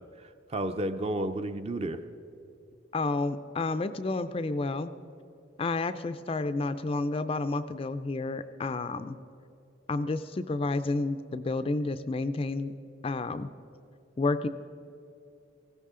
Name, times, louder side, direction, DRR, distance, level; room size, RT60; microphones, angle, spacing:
voice 1, 0.0-2.0, right 1 dB, 30° right, 10 dB, 0.5 m, -32 dB
voice 2, 2.9-4.9 5.6-9.2 9.9-12.7 13.0-13.5 14.2-14.5, left 3 dB, 25° left, 11 dB, 0.3 m, -30 dB
18.5 x 15.5 x 3.7 m, 2.8 s
head